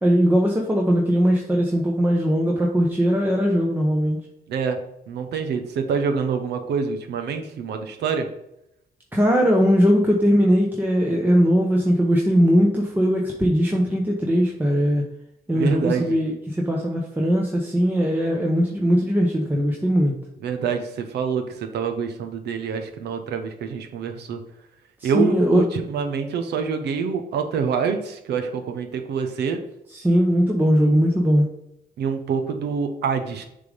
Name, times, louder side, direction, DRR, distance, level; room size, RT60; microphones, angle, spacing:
voice 1, 0.0-4.2 9.1-15.0 15.5-20.1 25.0-25.6 29.9-31.5, equal, 10° right, -1 dB, 0.9 m, -20 dB
voice 2, 4.5-4.8 5.1-8.3 15.5-16.2 20.4-24.4 25.0-29.6 32.0-33.4, right 6 dB, 85° right, 6 dB, 1.0 m, -26 dB
6.7 x 3.8 x 5.1 m, 0.81 s
cardioid pair, 110°, 17 cm